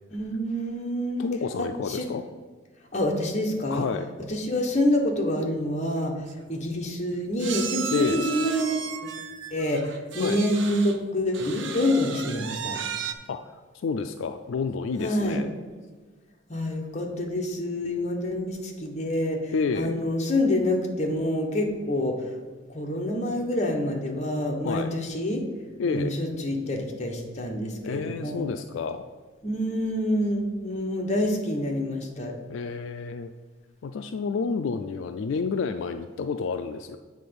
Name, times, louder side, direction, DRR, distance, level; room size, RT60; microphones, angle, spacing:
voice 1, 0.1-1.3 1.6-2.1 2.9-3.9 4.3-9.1 9.5-12.8 15.0-15.4 16.5-22.4 22.7-25.4 25.8-28.4 29.4-32.3, left 1 dB, 35° left, 0 dB, 1.2 m, -27 dB
voice 2, 1.2-2.2 3.7-4.1 7.9-8.3 10.2-10.4 13.3-15.5 19.5-20.0 24.6-24.9 25.8-26.2 27.8-29.1 32.5-33.3 33.8-37.0, left 5 dB, 75° left, 8 dB, 0.3 m, -29 dB
sound 1, 6.0-6.1 6.3-6.5 7.4-11.0 11.3-13.1, right 7 dB, 70° right, 0.7 m, -35 dB
8.4 x 3.9 x 6.9 m, 1.4 s
head